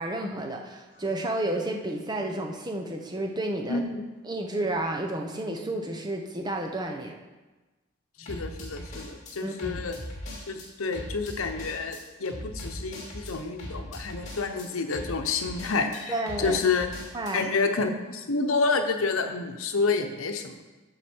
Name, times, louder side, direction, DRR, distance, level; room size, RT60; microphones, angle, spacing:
voice 1, 0.0-3.8 4.2-7.2 8.2-8.3 9.4-9.8 16.1-16.6 17.1-17.5, right 1 dB, 20° right, 2 dB, 0.8 m, -31 dB
sound 1, 0.9-1.2 8.3-10.7 10.9-17.3, left 1 dB, 35° left, 2.4 m, -39 dB
voice 2, 3.7-4.0 8.2-10.0 10.5-16.1 16.4-16.9 17.3-20.7, left 4 dB, 85° left, 6 dB, 0.9 m, -29 dB
13.5 x 5.0 x 4.5 m, 1.2 s
head